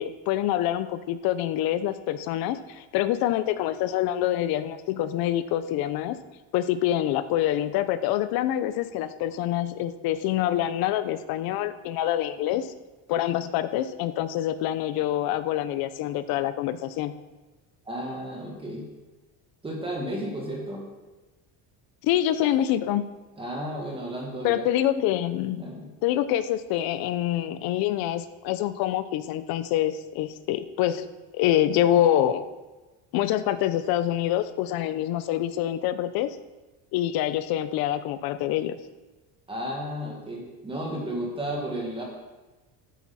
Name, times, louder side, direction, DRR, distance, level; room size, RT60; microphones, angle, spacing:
voice 1, 0.0-6.2 6.5-12.7 13.1-17.1 22.0-23.1 24.4-25.6 26.0-31.1 31.3-32.5 33.1-36.3 36.9-38.8, left 12 dB, 65° left, 13 dB, 0.8 m, -26 dB
voice 2, 17.9-18.9 19.6-20.9 23.4-24.7 25.6-25.9 39.5-42.0, right 1 dB, 15° right, -1 dB, 2.0 m, -33 dB
13.0 x 9.3 x 4.3 m, 1.2 s
cardioid pair, 160°, 39 cm